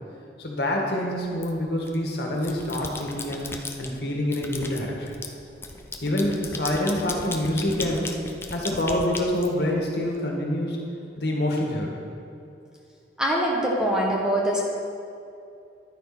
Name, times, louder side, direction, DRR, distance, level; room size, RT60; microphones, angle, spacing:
voice 1, 0.4-3.5 3.8-5.1 6.0-8.1 8.5-10.8 11.2-12.0, left 1 dB, 65° left, -1 dB, 1.9 m, -26 dB
sound 1, 1.4-2.0 2.3-3.9 4.3-10.1, left 3 dB, 15° left, 0.6 m, -36 dB
voice 2, 13.2-14.6, right 1 dB, 5° right, -3 dB, 1.3 m, -23 dB
11.0 x 10.5 x 4.4 m, 2.6 s
head